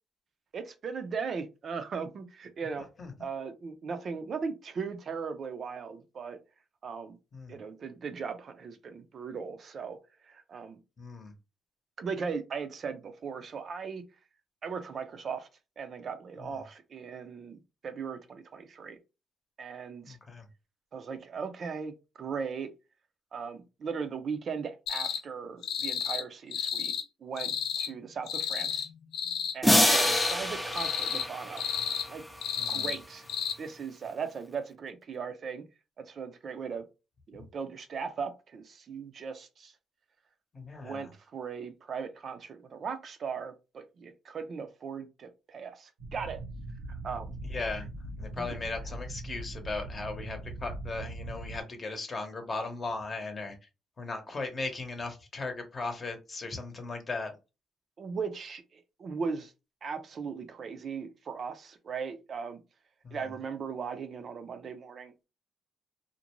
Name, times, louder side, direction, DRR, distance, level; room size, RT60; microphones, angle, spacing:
voice 1, 0.5-2.9 3.2-6.4 6.8-7.2 7.5-10.0 10.3-10.8 12.0-14.0 14.6-15.5 15.8-19.0 19.6-20.2 20.9-22.7 23.3-26.9 27.2-28.9 29.5-31.6 32.1-32.2 32.7-33.3 33.6-35.6 36.0-36.8 37.3-39.7 40.8-46.4 46.9-47.4 48.4-48.5 58.0-59.5 59.8-62.6 63.1-65.1, right 5 dB, 55° right, 0.5 m, -38 dB
voice 2, 11.0-11.3 16.4-16.5 20.0-20.5 30.1-30.2 32.6-32.9 40.5-41.1 47.4-47.9 48.2-53.6 54.0-57.3 63.0-63.3, left 3 dB, 35° left, 0.8 m, -37 dB
sound 1, 24.9-25.2 25.6-26.2 26.5-27.0 27.4-27.9 28.3-28.9 29.1-29.5 29.8-30.4 30.7-31.3 31.6-32.1 32.4-33.0 33.3-33.5, left 8 dB, 85° left, 0.4 m, -32 dB
sound 2, 29.6-32.1, equal, ahead, 0.5 m, -26 dB
sound 3, 46.0-51.6, right 1 dB, 85° right, 1.0 m, -40 dB
2.5 x 2.1 x 3.0 m
cardioid pair, 90°, 0 cm